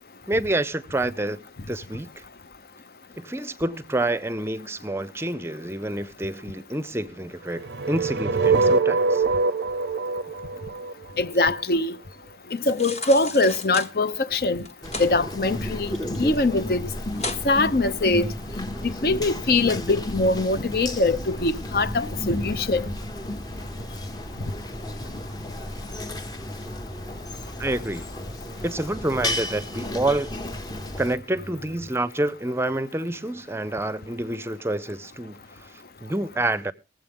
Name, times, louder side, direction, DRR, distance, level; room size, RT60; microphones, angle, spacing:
voice 1, 0.3-1.4 1.7-2.2 3.2-9.2 27.6-28.1 28.6-30.3 31.0-36.7, right 1 dB, 15° right, 0.5 m, -28 dB
sound 1, 7.5-11.6, right 4 dB, 85° right, 0.5 m, -23 dB
voice 2, 11.2-12.0 12.5-14.7 15.0-15.9 16.2-16.8 17.4-18.3 18.8-22.9, left 2 dB, 60° left, 0.7 m, -22 dB
sound 2, 12.6-13.9 14.6-15.1 15.5-16.4 16.7-16.8 17.1-17.5 17.9-18.0, left 3 dB, 40° left, 1.2 m, -34 dB
sound 3, 14.8-31.2, left 1 dB, 20° left, 0.7 m, -33 dB
21.0 x 7.7 x 3.5 m
head